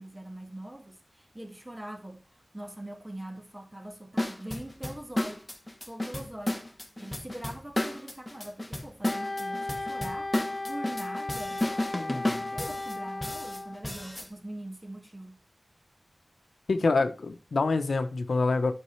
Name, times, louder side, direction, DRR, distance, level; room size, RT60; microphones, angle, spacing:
voice 1, 0.0-5.4 5.8-6.6 7.0-10.3 10.7-11.7 12.4-15.4, right 1 dB, 15° right, 1.8 m, -42 dB
sound 1, 4.2-14.3, left 1 dB, 15° left, 1.2 m, -33 dB
Wind instrument woodwind instrument, 9.0-13.9, left 2 dB, 45° left, 0.5 m, -35 dB
voice 2, 16.7-18.7, left 3 dB, 80° left, 0.9 m, -26 dB
11.5 x 5.2 x 3.2 m
wide cardioid pair, 75°, 0 cm